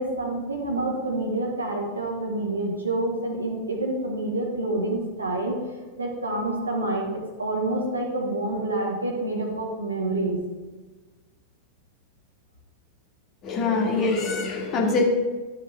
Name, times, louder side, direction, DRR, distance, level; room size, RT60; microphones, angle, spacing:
voice 1, 0.0-5.6 6.0-7.1 7.4-10.4, right 2 dB, 80° right, 0 dB, 1.5 m, -27 dB
voice 2, 13.4-15.0, left 3 dB, 35° left, 0 dB, 1.7 m, -24 dB
12.5 x 5.1 x 3.3 m, 1.2 s
figure-of-eight pair, 90°, 0 cm